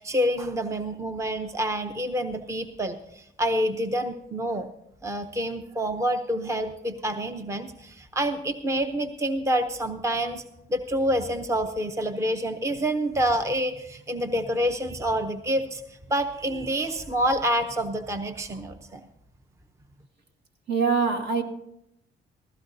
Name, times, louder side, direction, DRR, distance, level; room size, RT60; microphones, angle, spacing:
voice 1, 0.0-4.7 5.0-10.4 10.7-19.1, equal, 15° right, 8 dB, 0.7 m, -27 dB
voice 2, 20.7-21.4, right 5 dB, 60° right, 5 dB, 1.8 m, -23 dB
16.5 x 15.0 x 2.7 m, 0.79 s
cardioid pair, 90°, 20 cm